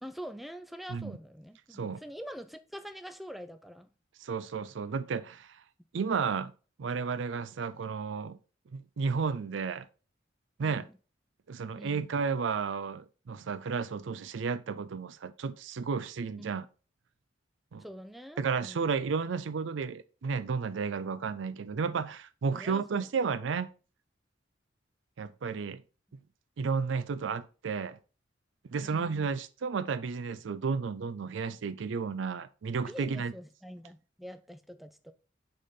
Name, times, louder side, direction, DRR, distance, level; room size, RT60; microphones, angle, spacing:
voice 1, 0.0-3.9 10.6-11.0 11.8-12.1 16.4-16.5 17.8-18.9 22.5-23.1 28.8-29.3 32.9-35.1, equal, ahead, 0.3 m, -45 dB
voice 2, 4.2-5.6 5.9-6.5 6.8-8.4 8.7-9.9 10.6-10.9 11.5-16.7 17.7-17.8 18.4-23.7 25.2-25.8 26.6-28.0 28.7-33.3, right 5 dB, 75° right, 0.4 m, -32 dB
6.4 x 4.2 x 3.7 m
head